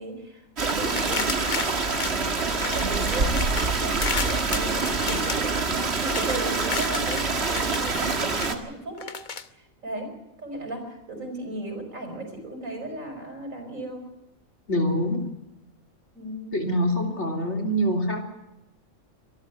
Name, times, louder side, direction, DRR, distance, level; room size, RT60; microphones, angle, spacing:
voice 1, 0.0-9.2 9.6-10.1 10.4-14.1 16.1-16.6, right 2 dB, 75° right, 5 dB, 5.7 m, -36 dB
Stream, 0.6-8.6, right 4 dB, 50° right, 2.1 m, -26 dB
Aluminium Cans Crushed, 0.9-2.9 3.1-7.3 7.5-8.5 9.0-9.4, left 5 dB, 40° left, 1.0 m, -33 dB
voice 2, 14.7-15.2 16.5-18.2, equal, 55° left, 3 dB, 3.6 m, -25 dB
23.5 x 14.0 x 9.4 m, 0.92 s
omnidirectional pair, 1.4 m